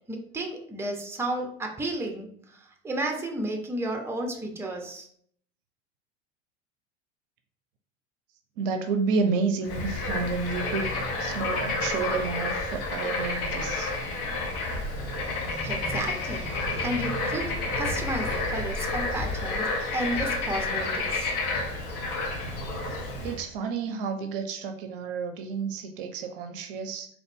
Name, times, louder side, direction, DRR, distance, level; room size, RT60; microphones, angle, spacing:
voice 1, 0.1-5.1 15.6-16.5 16.7-17.5 17.8-21.3, right 1 dB, 5° right, 3 dB, 0.7 m, -32 dB
voice 2, 8.6-10.9 11.2-13.9 23.2-27.1, right 4 dB, 55° right, 7 dB, 0.6 m, -30 dB
Bird / Frog, 9.6-23.4, left 2 dB, 50° left, 1.1 m, -30 dB
4.0 x 3.0 x 3.4 m, 0.64 s
figure-of-eight pair, 75°, 34 cm